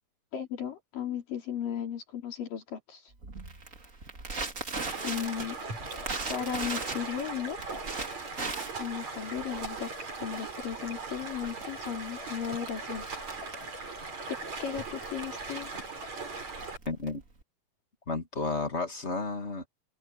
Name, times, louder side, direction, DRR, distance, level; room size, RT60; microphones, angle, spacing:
voice 1, 0.3-3.1 5.0-5.6 6.3-7.6 8.8-13.1 14.3-15.7, left 8 dB, 70° left, 5.2 m, -36 dB
Crackle, 3.2-17.4, right 3 dB, 25° right, 2.4 m, -40 dB
Stream, 4.8-16.8, right 3 dB, 50° right, 7.6 m, -39 dB
voice 2, 16.8-17.2 18.1-19.7, left 3 dB, 30° left, 1.4 m, -32 dB
open air
omnidirectional pair, 4.1 m